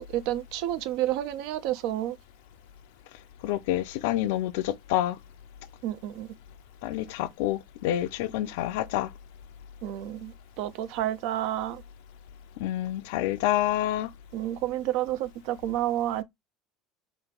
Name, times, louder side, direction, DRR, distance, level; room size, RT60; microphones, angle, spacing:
voice 1, 0.0-2.2 5.8-6.3 9.8-11.8 14.3-16.2, right 13 dB, 65° right, 0.4 m, -30 dB
voice 2, 3.4-5.2 6.8-9.1 12.6-14.1, left 13 dB, 70° left, 0.3 m, -28 dB
3.0 x 2.5 x 3.5 m
hypercardioid pair, 70°, 0 cm